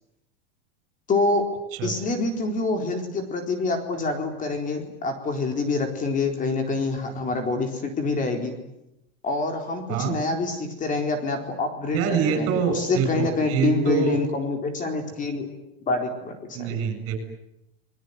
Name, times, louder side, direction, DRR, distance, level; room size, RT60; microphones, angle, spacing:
voice 1, 1.1-1.5 1.8-8.5 9.2-15.5 15.9-16.8, left 3 dB, 25° left, 5 dB, 4.3 m, -26 dB
voice 2, 11.9-14.2 16.5-17.2, right 7 dB, 50° right, 8 dB, 8.0 m, -25 dB
30.0 x 21.0 x 9.6 m, 0.87 s
supercardioid pair, 140°, 31 cm